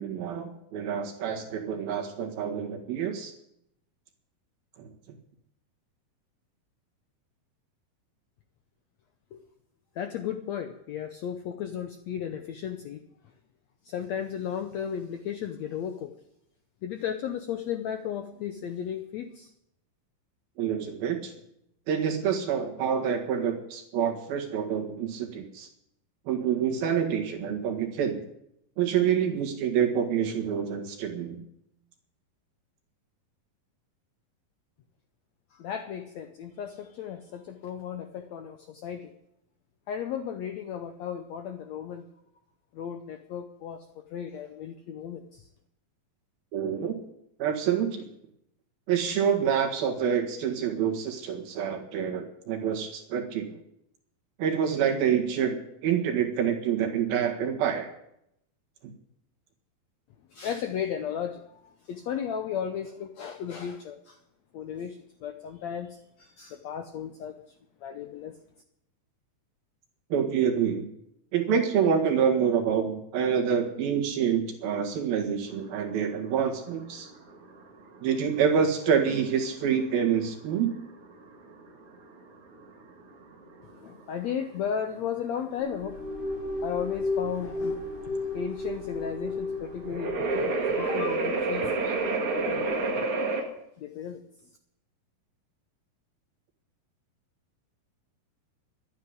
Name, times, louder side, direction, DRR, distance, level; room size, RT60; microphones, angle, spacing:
voice 1, 0.0-3.3 4.8-4.9 20.6-21.3 21.9-25.7 26.3-28.2 28.8-31.4 46.5-47.0 47.4-48.1 48.9-53.6 54.4-57.9 70.1-70.9 71.3-77.1 78.0-80.8, right 8 dB, 80° right, 2 dB, 3.7 m, -27 dB
voice 2, 9.9-13.0 13.8-16.1 16.8-19.5 35.5-39.1 39.9-42.1 42.7-45.5 60.3-64.2 64.5-67.4 67.8-68.4 83.8-86.0 86.6-87.9 88.3-92.0 92.3-92.7 93.0-93.1 93.8-94.2, left 8 dB, 80° left, 7 dB, 1.6 m, -35 dB
sound 1, 75.5-93.4, right 3 dB, 45° right, 2.4 m, -32 dB
sound 2, 85.6-93.1, left 2 dB, 35° left, 6.5 m, -35 dB
12.0 x 9.7 x 9.5 m, 0.79 s
omnidirectional pair, 4.2 m